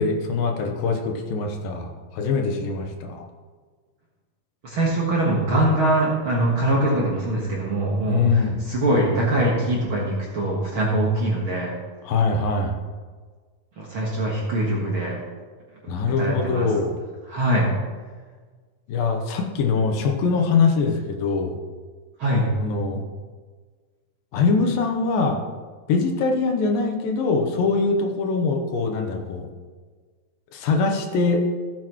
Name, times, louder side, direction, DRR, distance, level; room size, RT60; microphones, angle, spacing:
voice 1, 0.0-3.2 8.1-8.6 12.1-12.8 15.9-17.0 18.9-21.6 22.6-23.0 24.3-25.4 25.9-29.5 30.5-31.4, left 4 dB, 80° left, 3 dB, 2.7 m, -23 dB
voice 2, 4.6-11.7 13.8-15.1 16.2-16.7 17.3-17.7 22.2-22.5, right 1 dB, 50° right, -4 dB, 1.6 m, -22 dB
15.0 x 8.2 x 3.1 m, 1.5 s
omnidirectional pair, 4.0 m